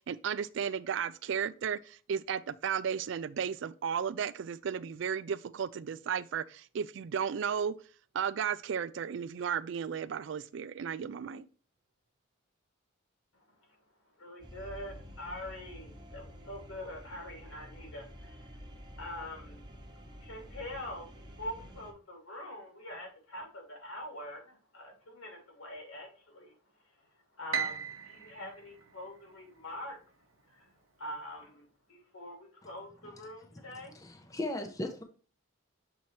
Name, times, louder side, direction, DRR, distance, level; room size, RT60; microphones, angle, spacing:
voice 1, 0.1-7.7 8.1-11.5, right 7 dB, 60° right, 0.3 m, -34 dB
voice 2, 14.2-19.6 20.2-26.5 27.0-27.1 27.4-30.0 30.5-30.7 31.0-33.9, left 1 dB, 85° left, 2.6 m, -44 dB
sound 1, 14.4-21.9, equal, 20° right, 1.1 m, -49 dB
Piano, 27.5-29.8, right 7 dB, 85° right, 0.7 m, -38 dB
voice 3, 33.6-35.0, left 1 dB, 15° left, 0.7 m, -38 dB
7.0 x 4.3 x 3.1 m
head